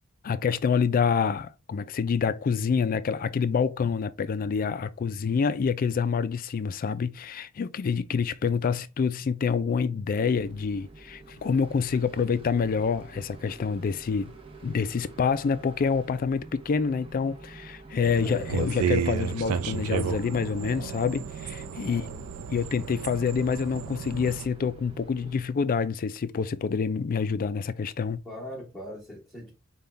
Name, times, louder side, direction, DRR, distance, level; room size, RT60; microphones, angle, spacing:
voice 1, 0.2-14.3 14.6-22.0 22.5-28.2, left 6 dB, 40° left, 0.3 m, -27 dB
sound 1, 10.3-25.4, right 3 dB, 25° right, 0.8 m, -47 dB
sound 2, 18.0-24.5, right 7 dB, 90° right, 0.4 m, -32 dB
voice 2, 21.8-22.3 28.2-29.5, equal, ahead, 1.1 m, -40 dB
5.4 x 2.3 x 3.3 m
head